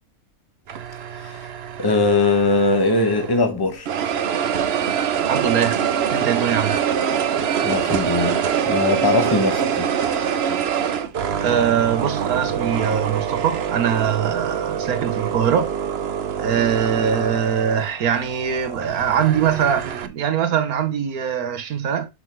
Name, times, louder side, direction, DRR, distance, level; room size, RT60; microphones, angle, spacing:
sound 1, 0.7-3.5 3.9-20.1, right 8 dB, 55° right, 0.9 m, -25 dB
voice 1, 1.8-3.9 7.6-9.9, left 3 dB, 15° left, 1.3 m, -20 dB
voice 2, 5.3-5.8 6.1-6.8 11.4-15.7 16.4-22.1, right 8 dB, 80° right, 1.5 m, -22 dB
6.0 x 5.8 x 4.5 m
omnidirectional pair, 1.5 m